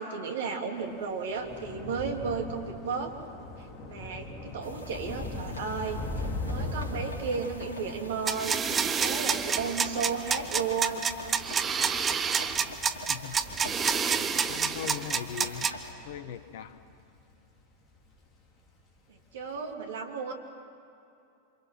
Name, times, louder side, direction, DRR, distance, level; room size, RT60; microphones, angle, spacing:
voice 1, 0.0-3.1 3.8-6.0 6.4-11.1 19.1-20.3, right 5 dB, 60° right, 2 dB, 3.1 m, -34 dB
Thunder / Rain, 0.8-17.4 17.8-18.2 18.5-18.7, left 2 dB, 30° left, 3.5 m, -41 dB
sound 1, 4.6-15.9, left 1 dB, 70° left, 3.3 m, -45 dB
sound 2, 8.3-15.7, right 6 dB, 20° right, 1.0 m, -28 dB
voice 2, 13.1-13.4 14.5-15.7 16.0-16.8, left 9 dB, 55° left, 12 dB, 1.3 m, -39 dB
27.5 x 27.0 x 6.0 m, 2.6 s
figure-of-eight pair, 90°, 0 cm